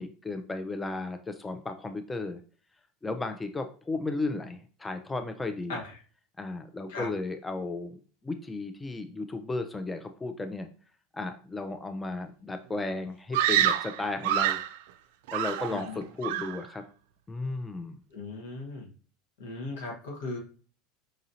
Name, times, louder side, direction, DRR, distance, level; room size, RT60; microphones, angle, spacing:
voice 1, 0.0-2.4 3.0-5.8 6.4-10.7 11.1-14.6 15.3-16.8 17.3-18.0, left 3 dB, 15° left, 7 dB, 0.4 m, -34 dB
Screaming, 13.3-14.8 15.3-15.9 16.2-16.6, right 11 dB, 75° right, 0.3 m, -27 dB
voice 2, 15.7-16.0 18.1-18.9 19.4-20.4, left 3 dB, 75° left, 0 dB, 1.3 m, -37 dB
4.9 x 2.7 x 2.7 m, 0.40 s
hypercardioid pair, 90°, 0 cm